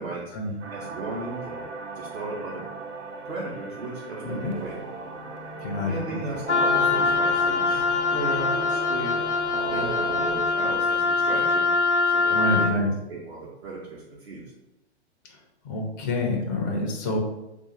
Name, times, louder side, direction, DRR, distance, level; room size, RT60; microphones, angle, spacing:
voice 1, 0.0-0.3 0.7-1.7 1.9-2.6 3.2-4.8 5.9-7.8 8.1-9.2 9.6-11.7 12.1-14.4, right 3 dB, 65° right, -7 dB, 1.0 m, -36 dB
sound 1, 0.6-10.5, right 4 dB, 85° right, 0.5 m, -37 dB
sound 2, 4.7-10.7, left 4 dB, 40° right, 0.5 m, -46 dB
voice 2, 5.6-6.2 12.3-12.9 15.3-15.4 15.6-17.2, left 2 dB, 20° left, 1 dB, 0.4 m, -27 dB
Wind instrument woodwind instrument, 6.5-12.8, left 4 dB, 80° left, 0.5 m, -23 dB
2.5 x 2.4 x 3.9 m, 0.94 s
figure-of-eight pair, 115°, 34 cm